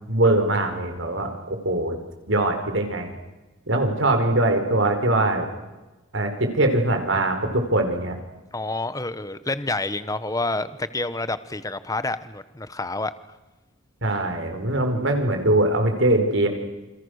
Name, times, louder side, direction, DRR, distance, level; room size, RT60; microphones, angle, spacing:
voice 1, 0.1-2.0 2.3-3.1 3.7-5.5 6.1-8.2 14.0-16.5, right 1 dB, 65° right, 6 dB, 4.7 m, -22 dB
voice 2, 8.5-13.1, left 2 dB, 15° left, 13 dB, 1.1 m, -28 dB
29.0 x 27.5 x 6.6 m, 1.1 s
head